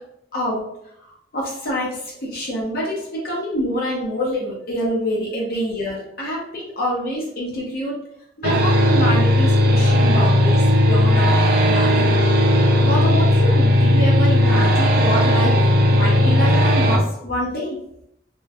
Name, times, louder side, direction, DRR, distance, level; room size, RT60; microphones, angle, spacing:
voice 1, 0.3-0.6 1.0-8.0 8.4-11.4 11.7-12.1 12.8-15.5 15.9-17.8, equal, 55° left, -4 dB, 0.7 m, -26 dB
sound 1, 8.4-17.0, left 1 dB, 55° right, 0.4 m, -16 dB
3.0 x 2.1 x 2.3 m, 0.75 s
head